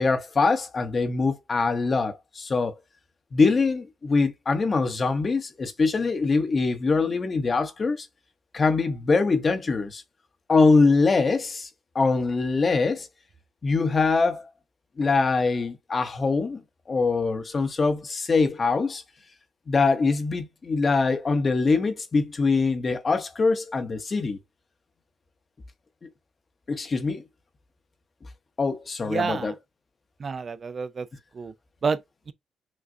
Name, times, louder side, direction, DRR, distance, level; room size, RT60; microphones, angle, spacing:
voice 1, 0.0-2.7 3.3-8.1 8.5-10.0 10.5-11.7 11.9-13.1 13.6-14.5 15.0-16.6 16.9-19.0 19.7-24.4 26.0-26.1 26.7-27.2 28.6-29.5, left 4 dB, 35° left, 0.8 m, -23 dB
voice 2, 29.0-29.5 30.2-31.1 31.3-31.5 31.8-32.0, right 5 dB, 40° right, 0.4 m, -28 dB
6.0 x 2.3 x 2.6 m
cardioid pair, 90°, 0 cm